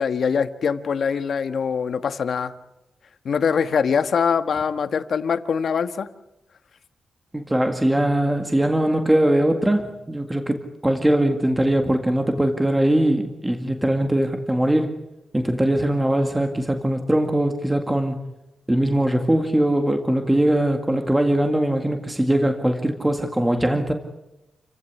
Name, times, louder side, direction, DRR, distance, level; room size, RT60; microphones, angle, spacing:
voice 1, 0.0-2.5 3.2-6.1, left 6 dB, 60° left, 10 dB, 1.5 m, -23 dB
voice 2, 7.3-14.9 15.3-18.2 18.7-23.9, right 1 dB, 10° right, 5 dB, 2.0 m, -21 dB
29.0 x 16.5 x 10.0 m, 0.96 s
wide cardioid pair, 140°, 0 cm